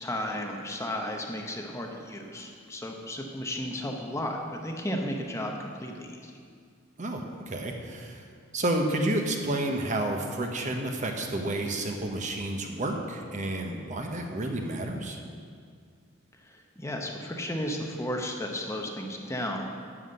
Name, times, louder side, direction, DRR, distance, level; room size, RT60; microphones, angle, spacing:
voice 1, 0.0-6.3 16.4-19.7, left 1 dB, 15° left, 1 dB, 0.8 m, -34 dB
voice 2, 7.0-8.2 8.5-15.2, right 1 dB, 35° right, 3 dB, 1.0 m, -30 dB
11.0 x 5.8 x 7.8 m, 2.1 s
head